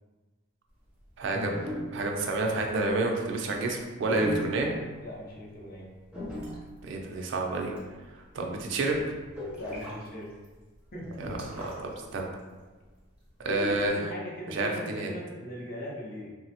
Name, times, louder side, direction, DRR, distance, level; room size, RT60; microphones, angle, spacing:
sound 1, 1.2-2.2 2.7-2.9 4.1-5.0 6.1-6.8 7.6-7.8 8.1-8.2 8.5-10.0 10.4-10.5 10.9-11.9 12.2-12.3 13.5-13.9, equal, 5° right, 0.5 m, -37 dB
voice 1, 1.2-1.5 1.9-4.7 6.8-7.7 8.1-9.1 11.2-12.3 13.4-14.1 14.5-15.1, right 2 dB, 55° right, 1 dB, 0.4 m, -29 dB
voice 2, 5.0-5.9 9.6-10.3 10.9-11.2 13.5-13.6 14.0-16.3, equal, 45° left, -3 dB, 0.5 m, -40 dB
3.1 x 2.0 x 2.7 m, 1.3 s
head